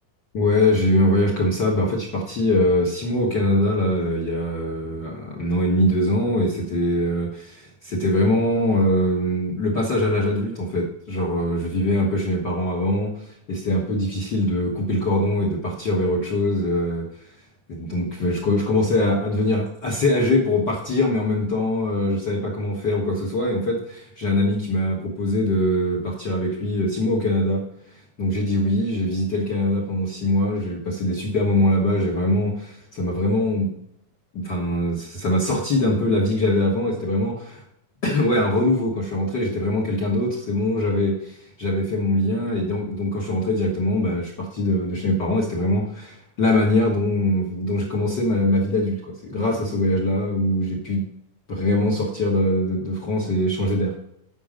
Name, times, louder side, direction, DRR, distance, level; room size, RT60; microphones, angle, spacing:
voice 1, 0.3-13.1 13.5-17.0 17.7-27.6 28.2-33.7 34.3-37.6 38.0-51.0 51.5-53.9, left 1 dB, 50° left, -1 dB, 1.3 m, -22 dB
9.1 x 6.2 x 5.0 m, 0.73 s
omnidirectional pair, 4.2 m